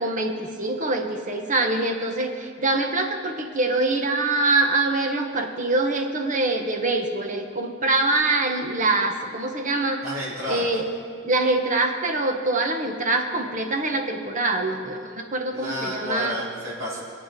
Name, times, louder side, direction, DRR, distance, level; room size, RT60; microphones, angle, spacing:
voice 1, 0.0-10.0 10.5-10.9 11.2-16.4, right 2 dB, 40° right, 4 dB, 1.3 m, -24 dB
voice 2, 10.0-10.7 15.5-17.0, equal, 75° right, -10 dB, 3.8 m, -31 dB
23.0 x 8.8 x 3.9 m, 2.3 s
head